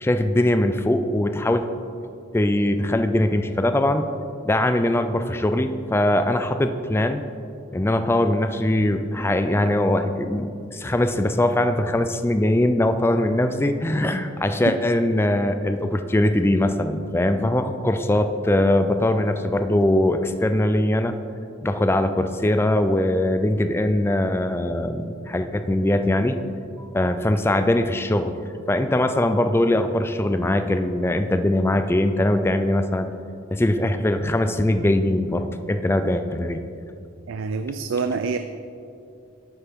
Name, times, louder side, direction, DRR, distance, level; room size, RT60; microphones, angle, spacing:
voice 1, 0.0-1.7 2.3-4.0 4.4-7.2 7.7-21.2 21.6-26.4 26.8-28.4 28.7-33.1 33.5-36.6, left 1 dB, 10° left, 9 dB, 0.3 m, -21 dB
voice 2, 37.3-38.4, right 4 dB, 75° right, 9 dB, 0.4 m, -26 dB
11.5 x 7.9 x 3.6 m, 2.5 s
head